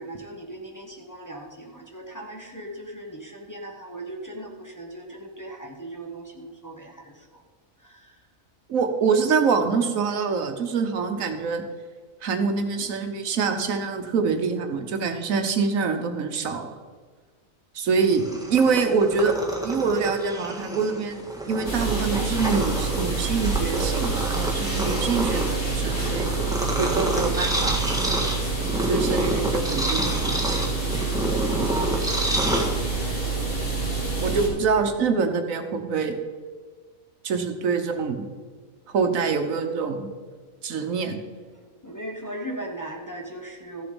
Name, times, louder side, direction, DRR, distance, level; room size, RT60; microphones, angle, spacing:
voice 1, 0.0-7.0 26.1-26.2 31.5-33.1 41.8-43.9, right 1 dB, 15° left, 0 dB, 1.1 m, -38 dB
voice 2, 8.7-11.6 12.2-16.7 17.7-18.2 18.5-19.4 19.6-26.3 26.8-27.8 28.8-30.2 34.2-36.1 37.2-38.2 38.9-40.1 40.6-41.2, right 5 dB, 80° right, 6 dB, 1.4 m, -25 dB
Purr, 18.0-33.2, right 1 dB, 5° right, 1.5 m, -29 dB
sound 1, 21.6-34.5, right 4 dB, 40° left, 4.2 m, -27 dB
14.5 x 7.0 x 5.2 m, 1.5 s
omnidirectional pair, 1.4 m